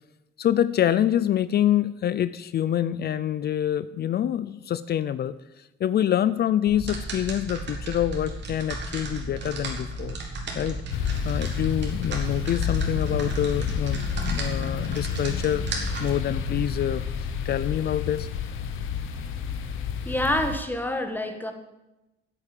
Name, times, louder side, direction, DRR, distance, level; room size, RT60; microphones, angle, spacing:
voice 1, 0.4-5.3 5.8-10.2 10.6-18.3, left 10 dB, 55° left, 15 dB, 0.5 m, -26 dB
sound 1, 6.7-16.9, right 2 dB, 65° right, 2.9 m, -34 dB
sound 2, 10.9-20.6, left 7 dB, 90° left, 1.1 m, -30 dB
voice 2, 20.0-21.5, left 1 dB, 10° left, 6 dB, 1.6 m, -27 dB
8.8 x 8.4 x 8.9 m, 0.99 s
cardioid pair, 90°, 20 cm